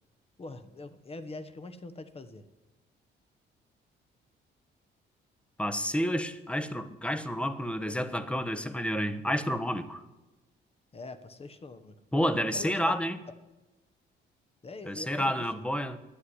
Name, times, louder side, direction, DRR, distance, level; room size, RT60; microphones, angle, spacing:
voice 1, 0.4-2.4 10.9-12.0 12.5-13.0 14.6-15.5, left 3 dB, 30° left, 12 dB, 1.3 m, -43 dB
voice 2, 5.6-10.0 12.1-13.2 14.9-16.0, equal, 5° left, 11 dB, 1.1 m, -30 dB
12.0 x 9.6 x 9.9 m, 1.1 s
cardioid pair, 90°, 20 cm